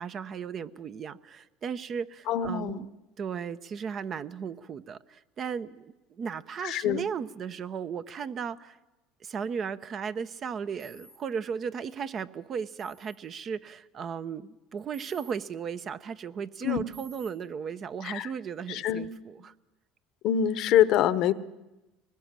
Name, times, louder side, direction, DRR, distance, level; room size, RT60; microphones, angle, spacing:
voice 1, 0.0-2.9 3.2-8.8 9.2-19.5, right 6 dB, 45° right, 12 dB, 0.8 m, -36 dB
voice 2, 2.3-2.8 6.6-7.0 16.6-16.8 18.0-18.3 18.7-19.1 20.2-21.3, left 10 dB, 60° left, 15 dB, 0.9 m, -25 dB
sound 1, 10.8-11.2 12.8-13.2 14.9-15.3 16.9-17.3, right 4 dB, 80° right, 3.4 m, -52 dB
23.0 x 20.0 x 7.6 m, 1.0 s
supercardioid pair, 90°, 0 cm